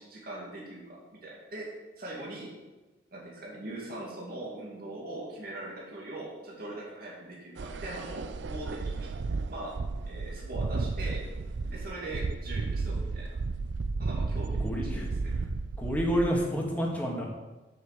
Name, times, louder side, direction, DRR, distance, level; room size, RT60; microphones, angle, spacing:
voice 1, 0.0-2.5 3.1-9.1 9.5-9.7 10.0-11.2 11.7-13.3 14.0-15.3, right 1 dB, 55° right, -4 dB, 2.4 m, -41 dB
sound 1, 7.6-16.3, right 3 dB, 75° right, 0.5 m, -33 dB
voice 2, 14.6-15.1 15.8-17.2, equal, 10° left, -2 dB, 1.9 m, -29 dB
7.8 x 6.2 x 7.6 m, 1.1 s
head